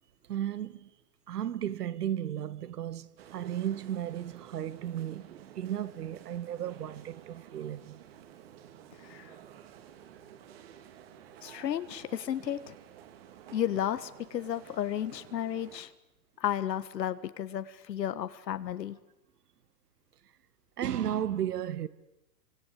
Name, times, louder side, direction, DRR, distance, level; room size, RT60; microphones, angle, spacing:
voice 1, 0.3-0.9 1.3-8.0 20.8-21.9, right 10 dB, 65° right, 1.9 m, -34 dB
sound 1, 3.2-15.8, right 9 dB, 35° right, 2.6 m, -52 dB
voice 2, 9.0-9.3 11.4-12.7 13.5-15.9 16.4-19.0, left 10 dB, 80° left, 1.7 m, -33 dB
25.5 x 25.0 x 8.3 m
hypercardioid pair, 175°, 49 cm